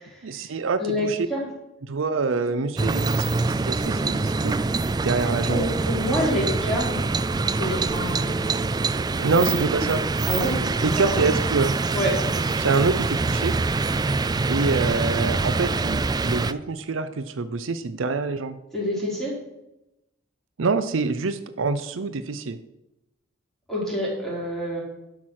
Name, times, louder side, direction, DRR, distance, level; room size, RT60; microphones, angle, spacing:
voice 1, 0.2-1.3 1.8-3.4 3.7-4.6 5.0-5.6 9.2-10.0 10.8-11.7 12.6-13.6 14.5-18.6 20.6-22.6, right 4 dB, 75° right, 11 dB, 0.6 m, -26 dB
voice 2, 0.8-1.4 5.5-7.0 7.6-8.6 9.4-9.7 10.3-11.2 11.9-12.1 18.7-19.3 23.7-24.8, equal, ahead, -5 dB, 4.3 m, -27 dB
sound 1, 2.8-16.5, right 3 dB, 20° right, 0.3 m, -25 dB
11.5 x 6.0 x 6.4 m, 0.90 s
head